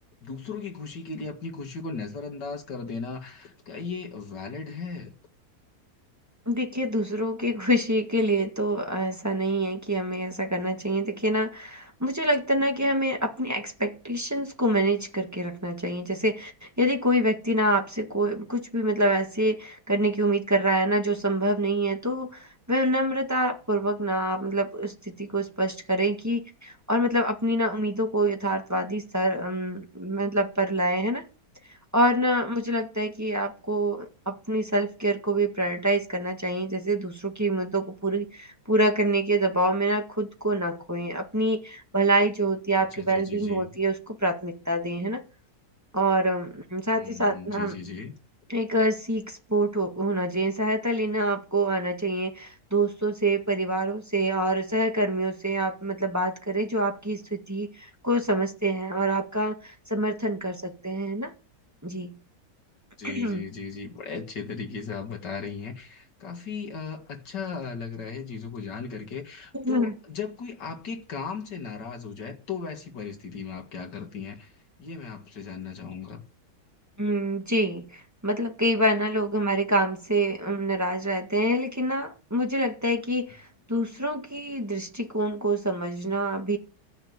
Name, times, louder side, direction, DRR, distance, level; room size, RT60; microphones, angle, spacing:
voice 1, 0.2-5.1 42.8-43.7 46.9-48.1 63.0-76.2, left 5 dB, 90° left, 2.5 m, -37 dB
voice 2, 6.4-31.2 31.9-45.2 45.9-47.7 48.5-61.3 61.8-62.1 63.0-63.4 69.5-69.9 77.0-86.6, right 1 dB, 10° right, 1.6 m, -26 dB
14.5 x 6.8 x 9.5 m
omnidirectional pair, 1.8 m